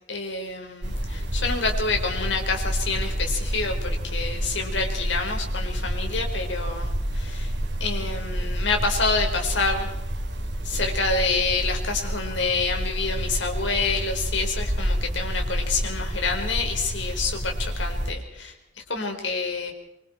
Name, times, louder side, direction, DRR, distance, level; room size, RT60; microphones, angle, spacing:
voice 1, 0.1-7.5 7.8-9.9 10.6-18.5 18.9-19.7, left 4 dB, 75° left, 3 dB, 4.8 m, -27 dB
sound 1, 0.8-18.1, equal, 65° right, 3.4 m, -29 dB
25.5 x 24.5 x 4.5 m, 0.85 s
head